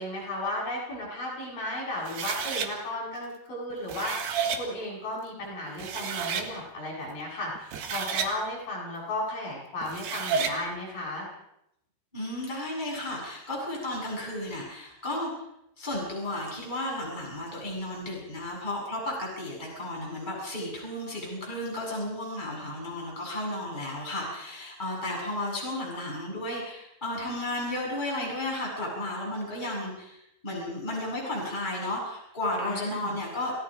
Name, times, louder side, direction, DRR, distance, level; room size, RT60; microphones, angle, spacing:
voice 1, 0.0-11.3 32.7-33.2, left 1 dB, 60° left, -4 dB, 9.8 m, -35 dB
sound 1, 2.1-2.7 3.7-4.6 5.4-5.5 5.8-6.5 7.6-8.3 9.8-10.6, right 6 dB, 75° right, 3.8 m, -30 dB
voice 2, 12.1-15.3 15.8-33.5, left 1 dB, 10° left, -3 dB, 8.0 m, -33 dB
29.0 x 18.0 x 5.2 m, 0.79 s
omnidirectional pair, 4.7 m